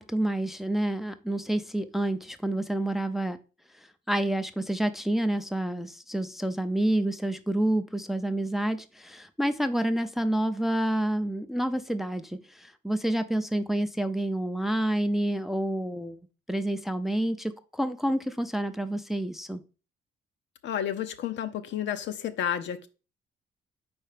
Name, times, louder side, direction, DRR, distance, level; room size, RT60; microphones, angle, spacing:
voice 1, 0.0-3.4 4.1-16.2 16.5-19.6, right 1 dB, ahead, 0.5 m, -28 dB
voice 2, 20.6-22.9, left 9 dB, 65° left, 0.7 m, -31 dB
4.6 x 4.4 x 5.0 m
cardioid pair, 90°, 20 cm